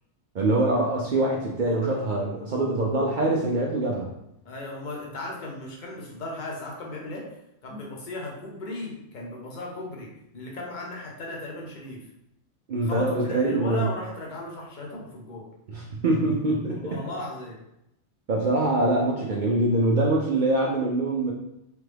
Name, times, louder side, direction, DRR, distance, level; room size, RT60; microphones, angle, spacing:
voice 1, 0.3-4.1 12.7-13.9 15.7-17.0 18.3-21.3, right 2 dB, 75° right, -3 dB, 0.4 m, -24 dB
voice 2, 1.7-2.6 4.4-7.2 7.6-10.1 10.3-12.0 12.8-15.4 16.8-17.6, left 2 dB, 40° left, -3 dB, 0.8 m, -37 dB
3.3 x 2.2 x 3.2 m, 0.82 s
omnidirectional pair, 1.4 m